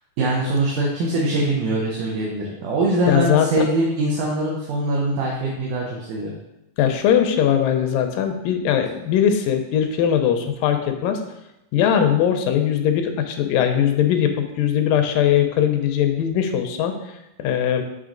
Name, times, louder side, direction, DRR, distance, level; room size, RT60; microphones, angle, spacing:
voice 1, 0.2-6.3, right 1 dB, 75° right, -4 dB, 2.4 m, -22 dB
voice 2, 3.1-3.7 6.8-11.2 11.7-17.0 17.4-17.8, left 9 dB, 90° left, 6 dB, 2.3 m, -20 dB
9.2 x 3.1 x 3.8 m, 0.91 s
omnidirectional pair, 3.8 m